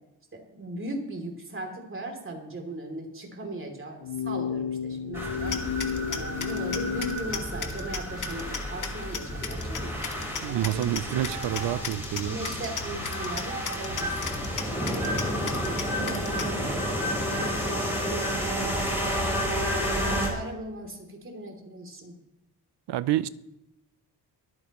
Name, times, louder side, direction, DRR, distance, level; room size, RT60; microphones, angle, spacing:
voice 1, 0.3-5.6 6.1-10.0 10.4-10.9 12.2-19.0 19.7-22.2, right 1 dB, 30° right, 2.9 m, -39 dB
sound 1, 4.0-7.2, left 8 dB, 85° left, 0.6 m, -32 dB
sound 2, 5.1-20.3, equal, 5° right, 4.6 m, -31 dB
sound 3, 5.4-16.5, left 5 dB, 50° left, 1.5 m, -38 dB
voice 2, 10.4-12.4 22.9-23.3, right 13 dB, 75° right, 0.6 m, -28 dB
23.0 x 8.8 x 3.1 m
cardioid pair, 105°, 41 cm